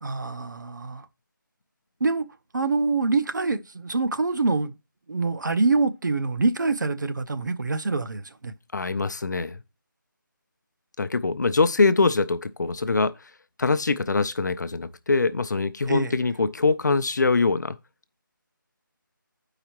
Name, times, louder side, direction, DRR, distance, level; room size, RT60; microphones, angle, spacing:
voice 1, 0.0-1.1 2.0-2.2 2.5-4.7 5.1-8.5 15.9-16.1, right 3 dB, 60° right, 0.7 m, -25 dB
voice 2, 8.7-9.6 11.0-13.1 13.6-17.8, left 3 dB, 55° left, 0.5 m, -23 dB
11.0 x 4.9 x 2.9 m
figure-of-eight pair, 170°, 11 cm